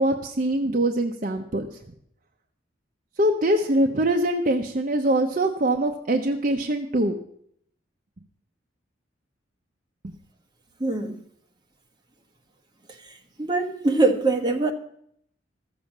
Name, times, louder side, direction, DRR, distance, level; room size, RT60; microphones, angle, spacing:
voice 1, 0.0-1.7 3.2-7.1, right 1 dB, 45° right, 0.8 m, -23 dB
voice 2, 10.8-11.2 13.4-14.7, right 3 dB, 25° right, 1.3 m, -22 dB
14.0 x 7.1 x 7.2 m
head